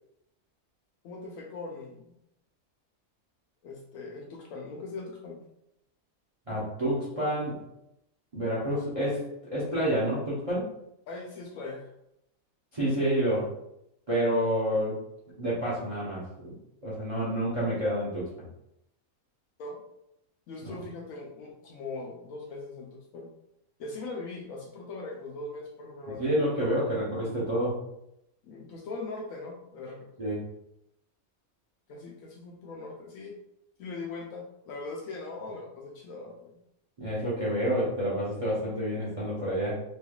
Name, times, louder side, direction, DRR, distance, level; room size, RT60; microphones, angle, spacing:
voice 1, 1.0-2.1 3.6-5.4 11.1-11.9 19.6-19.8 20.5-23.3 23.8-26.9 28.4-30.1 31.9-33.3 33.8-36.6, left 3 dB, 75° left, -1 dB, 1.0 m, -40 dB
voice 2, 6.5-7.6 8.3-10.7 12.7-13.5 14.1-15.0 15.4-16.6 16.8-18.2 20.6-20.7 26.2-27.7 30.2-30.4 37.0-39.8, equal, 30° right, -8 dB, 0.7 m, -28 dB
3.2 x 3.0 x 2.3 m, 0.81 s
omnidirectional pair, 1.5 m